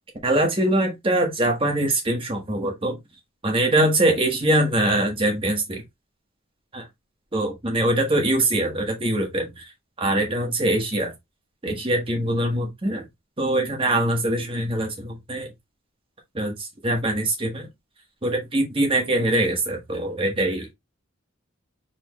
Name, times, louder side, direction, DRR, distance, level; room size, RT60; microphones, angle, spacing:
voice 1, 0.2-3.0 3.4-5.8 6.7-6.8 7.3-9.6 10.0-11.1 11.6-13.0 13.4-15.5 16.3-17.7 18.2-20.7, right 1 dB, 25° right, 1.3 m, -23 dB
4.4 x 3.4 x 3.0 m
head